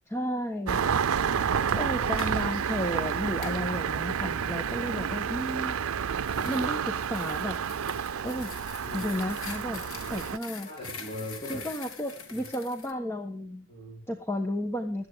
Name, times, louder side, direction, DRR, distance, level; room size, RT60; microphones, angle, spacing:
voice 1, 0.1-0.8 1.8-5.8 6.5-7.6 8.2-8.5 8.9-9.8 10.1-10.7 11.5-13.7 14.1-15.1, equal, 10° left, 5 dB, 1.2 m, -33 dB
Engine starting, 0.7-10.4, right 7 dB, 90° right, 0.5 m, -30 dB
voice 2, 1.2-2.1 3.7-3.8 6.3-6.7 8.8-9.2 9.7-9.9 10.7-11.6 12.3-12.5 13.7-14.0, equal, 25° left, -3 dB, 5.3 m, -42 dB
sound 1, 2.0-2.4 3.4-3.6 5.8-12.9, left 5 dB, 80° left, 2.8 m, -44 dB
17.0 x 12.5 x 3.6 m, 0.37 s
head